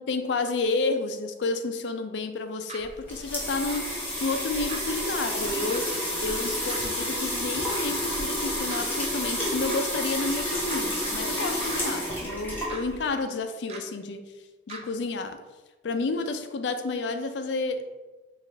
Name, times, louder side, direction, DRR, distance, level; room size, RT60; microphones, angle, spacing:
voice 1, 0.0-14.2 14.7-15.4 15.8-18.0, left 3 dB, 85° left, 8 dB, 0.4 m, -30 dB
sound 1, 2.7-2.8 3.7-3.8 4.7-4.8 5.7-5.8 6.7-6.8 7.7-7.8 8.7-8.8 9.7-9.8 10.7-10.8 11.7-11.8 12.7-12.8 13.7-13.8 14.7-14.8, right 4 dB, 35° right, 0.5 m, -39 dB
sound 2, 2.8-13.1, equal, 10° left, 1.1 m, -30 dB
4.8 x 2.4 x 3.3 m, 1.2 s
head